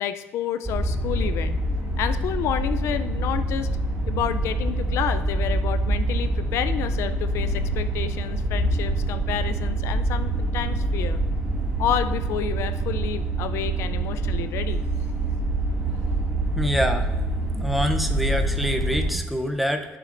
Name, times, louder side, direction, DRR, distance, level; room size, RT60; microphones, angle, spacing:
voice 1, 0.0-1.6 2.0-3.7 4.1-11.2 11.8-14.8, left 10 dB, 70° left, 11 dB, 0.4 m, -30 dB
sound 1, 0.6-19.1, right 2 dB, 15° right, 2.2 m, -25 dB
voice 2, 16.6-17.1 17.5-19.9, equal, ahead, 5 dB, 0.6 m, -25 dB
13.0 x 7.5 x 2.6 m, 1.3 s
cardioid pair, 155°, 5 cm